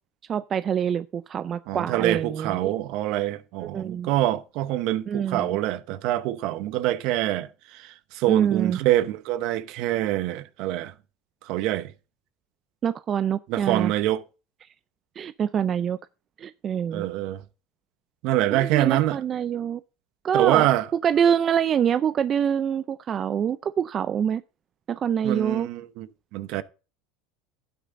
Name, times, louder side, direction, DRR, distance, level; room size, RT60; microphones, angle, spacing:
voice 1, 0.3-2.7 3.6-4.1 5.1-5.6 8.3-8.8 12.8-13.9 15.2-16.0 16.4-17.1 18.5-19.8 20.2-20.7 21.0-24.4 24.9-25.7, right 8 dB, 35° right, 0.4 m, -25 dB
voice 2, 1.7-10.9 11.4-11.9 13.5-14.2 16.9-17.4 18.2-19.2 20.3-20.9 25.2-26.6, right 14 dB, 60° right, 1.0 m, -25 dB
12.0 x 9.4 x 2.7 m
supercardioid pair, 125°, 0 cm